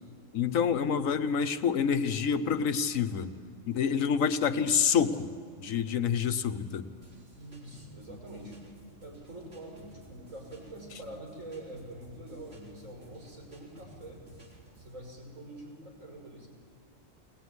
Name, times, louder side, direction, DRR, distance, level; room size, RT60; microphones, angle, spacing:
voice 1, 0.3-3.3 3.7-5.3 5.6-6.8, left 7 dB, 80° left, 10 dB, 1.3 m, -27 dB
sound 1, 7.0-15.0, right 1 dB, 50° right, 3.9 m, -55 dB
voice 2, 7.4-8.6 9.0-14.3 14.8-16.5, right 1 dB, 75° right, -1 dB, 6.6 m, -45 dB
22.0 x 19.0 x 9.7 m, 2.2 s
omnidirectional pair, 1.4 m